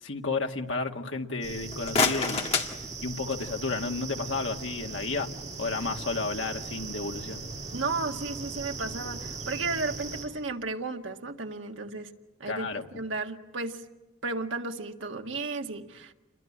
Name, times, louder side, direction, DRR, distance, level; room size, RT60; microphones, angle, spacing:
voice 1, 0.0-2.6 3.0-5.3 5.6-7.4 12.5-12.8, left 3 dB, 85° left, 3 dB, 1.9 m, -32 dB
sound 1, 1.4-10.2, right 4 dB, 35° right, 5.7 m, -39 dB
sound 2, 1.6-3.6, left 4 dB, 35° left, 1.9 m, -29 dB
voice 2, 7.7-12.1 12.4-13.8 14.2-16.1, right 3 dB, 85° right, 4 dB, 1.9 m, -34 dB
29.5 x 23.0 x 8.7 m, 1.0 s
head